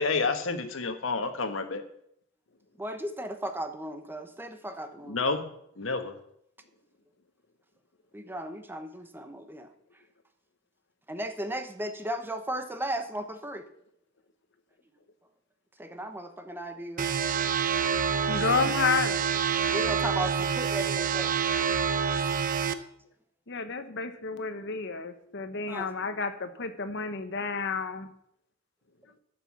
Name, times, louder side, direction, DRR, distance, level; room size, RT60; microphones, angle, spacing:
voice 1, 0.0-1.8 5.1-5.5 5.8-6.1, left 4 dB, 75° left, 7 dB, 1.4 m, -29 dB
voice 2, 2.8-5.2 8.1-9.7 11.1-13.6 15.8-17.1 19.7-21.4 25.7-26.2, right 1 dB, 10° right, 7 dB, 0.9 m, -36 dB
sound 1, 17.0-22.7, right 7 dB, 45° right, 0.7 m, -27 dB
voice 3, 18.3-19.3 23.5-28.1, left 5 dB, 60° left, 9 dB, 1.1 m, -30 dB
12.0 x 6.1 x 7.3 m, 0.71 s
head